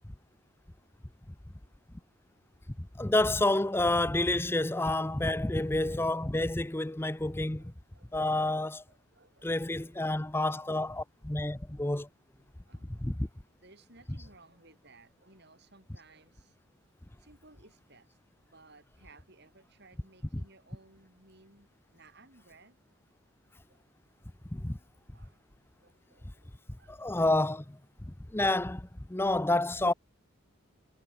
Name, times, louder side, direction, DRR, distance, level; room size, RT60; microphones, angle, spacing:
voice 1, 2.8-7.7 8.1-8.8 9.4-12.1 13.0-13.3 24.5-24.8 26.9-27.6 28.1-29.9, left 2 dB, 10° left, 0.6 m, -29 dB
voice 2, 7.5-8.6 8.9-10.5 11.4-11.6 12.7-13.1 13.6-16.6 17.2-23.0 23.7-23.8 25.1-25.4 25.8-27.2 27.6-27.7 29.3-29.7, right 3 dB, 55° right, 7.2 m, -60 dB
head